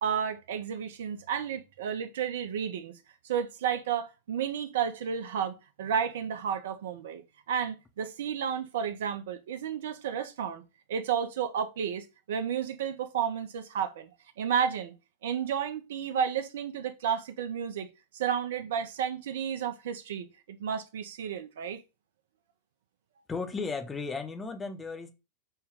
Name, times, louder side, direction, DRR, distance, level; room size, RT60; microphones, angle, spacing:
voice 1, 0.0-2.9 3.2-10.6 10.9-14.1 14.4-14.9 15.2-17.9 18.1-21.8, right 8 dB, 60° right, 0.6 m, -32 dB
voice 2, 23.3-25.1, left 4 dB, 15° left, 0.7 m, -35 dB
5.4 x 2.2 x 3.6 m
figure-of-eight pair, 90°, 0 cm